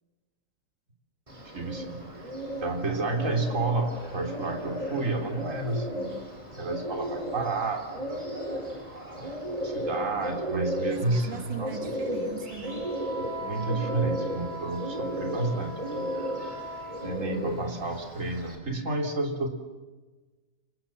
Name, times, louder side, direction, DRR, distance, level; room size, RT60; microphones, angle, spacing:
Bird, 1.3-18.6, equal, 20° right, 4.7 m, -35 dB
voice 1, 1.5-2.0 2.6-6.1 6.6-8.3 9.2-9.4 9.6-11.9 13.3-16.1 17.0-19.5, right 2 dB, 45° right, 3 dB, 3.6 m, -30 dB
voice 2, 10.9-12.9, right 7 dB, 85° right, 6 dB, 2.6 m, -40 dB
Wind instrument woodwind instrument, 11.2-17.5, right 1 dB, 65° right, 8.6 m, -41 dB
30.0 x 25.5 x 7.3 m, 1.2 s
omnidirectional pair, 1.9 m